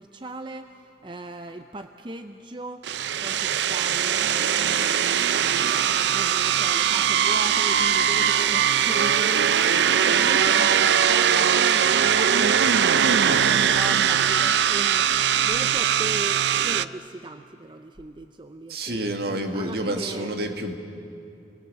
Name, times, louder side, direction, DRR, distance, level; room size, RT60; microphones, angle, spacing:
voice 1, 0.0-5.0 5.3-19.1 19.5-20.3, right 2 dB, 25° right, 7 dB, 0.6 m, -38 dB
sound 1, 2.8-16.8, right 8 dB, 75° right, 0.5 m, -21 dB
voice 2, 18.7-20.8, right 1 dB, 60° right, 5 dB, 1.8 m, -29 dB
30.0 x 19.5 x 7.6 m, 2.7 s
head